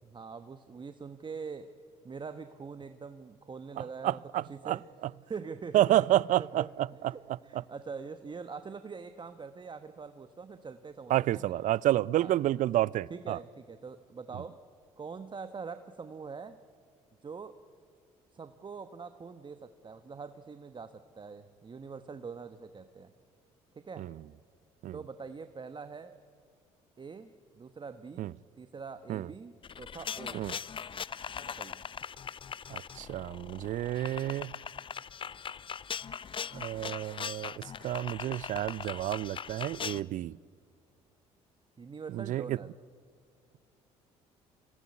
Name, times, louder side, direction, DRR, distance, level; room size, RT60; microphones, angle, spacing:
voice 1, 0.0-1.7 2.0-4.8 5.2-6.7 7.0-11.6 12.2-12.3 13.1-14.6 15.0-16.6 17.2-17.5 18.3-23.1 23.8-24.1 24.9-26.1 27.0-30.4 31.5-31.8 41.8-42.7, right 5 dB, 30° right, 1.1 m, -44 dB
voice 2, 4.0-4.8 5.7-6.6 7.5-7.6 11.1-13.4 24.0-24.1 24.8-25.0 28.2-28.3 29.1-29.3 30.3-30.5 32.7-34.6 36.5-40.3 42.1-42.6, right 14 dB, 60° right, 0.5 m, -29 dB
sound 1, 29.6-40.0, left 7 dB, 35° left, 0.6 m, -40 dB
25.0 x 17.0 x 9.6 m
hypercardioid pair, 65°, 15 cm